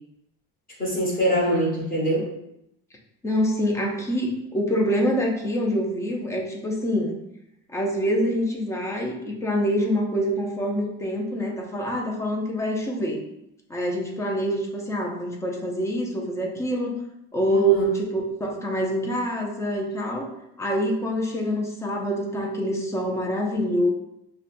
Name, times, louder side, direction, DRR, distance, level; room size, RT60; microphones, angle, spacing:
voice 1, 0.8-2.3 17.5-17.9, equal, 25° left, -5 dB, 1.3 m, -24 dB
voice 2, 3.2-7.2 7.7-13.2 13.7-17.0 17.3-20.3 20.6-23.9, equal, 10° left, 0 dB, 0.4 m, -25 dB
5.1 x 2.2 x 2.5 m, 0.81 s
cardioid pair, 160°, 33 cm